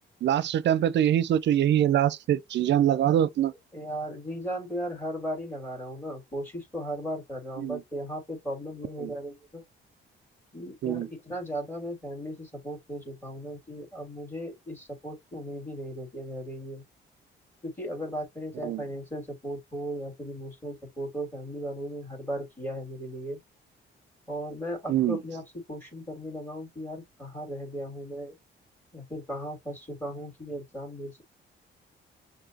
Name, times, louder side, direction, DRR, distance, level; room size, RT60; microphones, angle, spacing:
voice 1, 0.2-3.5 7.6-7.8 9.0-9.1 10.8-11.1 18.6-18.8 24.9-25.2, right 11 dB, 65° right, 0.5 m, -24 dB
voice 2, 3.7-9.6 10.5-16.8 17.6-23.4 24.3-28.4 28.9-31.2, equal, 10° left, 3.4 m, -36 dB
6.0 x 2.7 x 2.8 m
cardioid pair, 90°, 20 cm